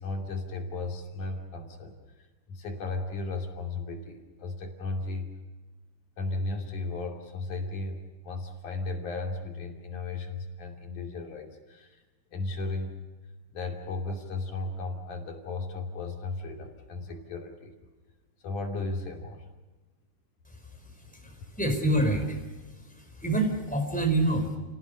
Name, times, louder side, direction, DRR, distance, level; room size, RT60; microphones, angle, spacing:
voice 1, 0.0-5.3 6.2-12.0 12.3-13.0 13.5-17.8 18.4-19.4, left 3 dB, 70° left, 2 dB, 4.3 m, -35 dB
voice 2, 21.1-22.4 23.0-24.6, right 1 dB, ahead, 3 dB, 4.4 m, -27 dB
30.0 x 18.0 x 6.6 m, 1.2 s
omnidirectional pair, 3.6 m